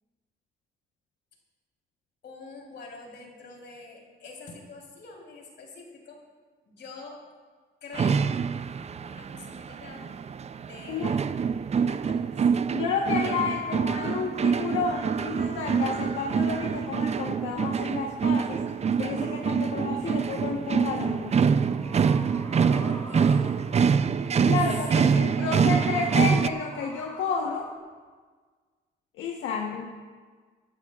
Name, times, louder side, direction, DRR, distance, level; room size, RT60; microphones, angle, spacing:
voice 1, 2.2-6.2 6.6-7.2 7.8-8.3 9.0-10.0 10.5-11.2 11.7-12.7 20.0-20.5 22.7-23.5 24.7-25.6, left 3 dB, 65° left, -1 dB, 3.8 m, -45 dB
sound 1, 7.9-26.5, right 6 dB, 35° right, 0.5 m, -25 dB
voice 2, 12.7-18.6 19.0-21.4 24.4-27.7 29.1-29.9, left 5 dB, 85° left, 0 dB, 1.2 m, -31 dB
sound 2, 19.3-27.8, left 1 dB, 15° left, 1.6 m, -46 dB
26.5 x 11.5 x 2.4 m, 1.5 s
cardioid pair, 90°, 20 cm